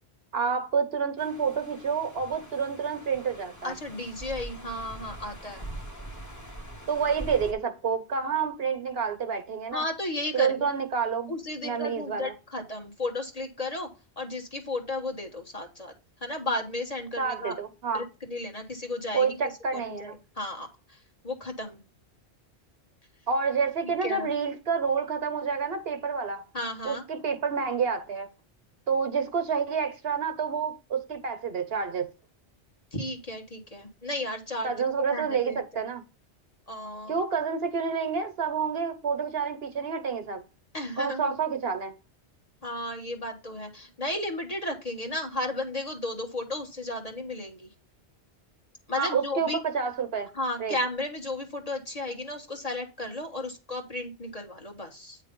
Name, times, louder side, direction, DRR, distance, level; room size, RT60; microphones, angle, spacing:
voice 1, 0.3-3.7 6.9-9.8 10.3-11.3 11.6-12.3 17.2-18.0 19.1-20.2 23.3-26.5 26.8-28.3 28.9-32.1 34.6-36.0 37.1-40.4 41.0-41.9 49.0-50.3 50.6-50.7, right 6 dB, 65° right, 1.1 m, -28 dB
sound 1, 1.2-7.5, right 1 dB, 15° left, 1.2 m, -43 dB
voice 2, 3.6-5.6 9.7-10.7 11.3-13.9 14.2-15.9 16.2-17.6 17.9-19.3 19.7-21.0 21.2-21.8 24.0-24.3 26.5-27.0 32.9-35.6 36.7-37.2 40.7-41.3 42.6-47.7 48.9-49.6 50.3-55.2, left 2 dB, 35° left, 1.5 m, -34 dB
9.0 x 3.2 x 5.1 m
omnidirectional pair, 1.1 m